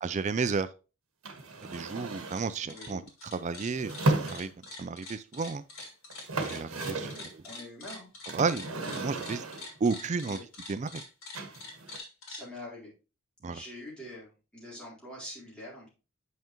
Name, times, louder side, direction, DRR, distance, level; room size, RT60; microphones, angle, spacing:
voice 1, 0.0-0.7 1.7-4.5 4.8-5.6 6.4-7.1 8.3-8.6 8.9-9.4 9.8-10.4 10.7-11.0 13.4-13.6, right 4 dB, 35° right, 0.3 m, -32 dB
sound 1, 1.2-2.5 3.7-4.8 5.8-5.9 6.1-7.3 8.3-9.8 11.3-12.0, right 2 dB, 75° right, 1.5 m, -34 dB
sound 2, 2.1-2.4 2.7-12.4, left 2 dB, 65° left, 3.7 m, -45 dB
voice 2, 2.7-3.1 6.9-8.1 10.2-10.4 11.9-12.0 12.3-12.9 13.4-15.9, left 1 dB, 5° left, 3.7 m, -45 dB
8.8 x 5.6 x 3.0 m
head